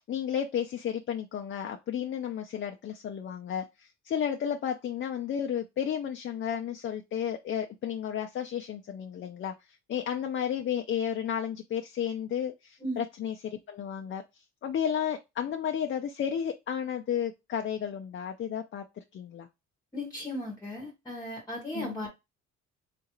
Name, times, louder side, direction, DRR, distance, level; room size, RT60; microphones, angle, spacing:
voice 1, 0.1-9.5 9.9-14.2 14.6-19.5 21.7-22.0, left 9 dB, 40° left, 0.5 m, -32 dB
voice 2, 19.9-22.1, left 1 dB, 15° left, 0.9 m, -36 dB
3.7 x 2.4 x 2.9 m
cardioid pair, 100°, 30 cm